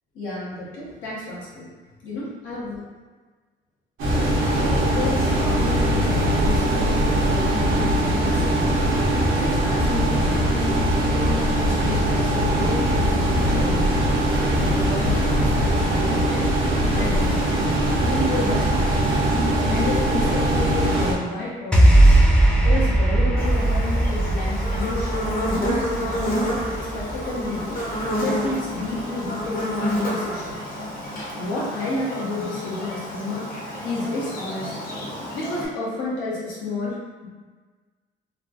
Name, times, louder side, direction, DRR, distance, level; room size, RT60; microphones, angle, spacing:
voice 1, 0.1-1.7 2.0-2.8 4.5-8.8 9.4-10.7 11.1-14.0 14.5-16.4 16.9-19.2 19.7-22.2 22.6-26.5 26.9-27.8 28.2-30.7 31.4-33.5 33.8-34.7 35.3-37.0, left 2 dB, 90° left, -7 dB, 1.0 m, -31 dB
sound 1, 4.0-21.1, right 1 dB, 90° right, 0.7 m, -21 dB
sound 2, 21.7-28.2, right 1 dB, 5° left, 0.4 m, -19 dB
Buzz, 23.4-35.7, equal, 50° left, 0.8 m, -29 dB
3.1 x 2.0 x 2.5 m, 1.4 s
cardioid pair, 90°, 20 cm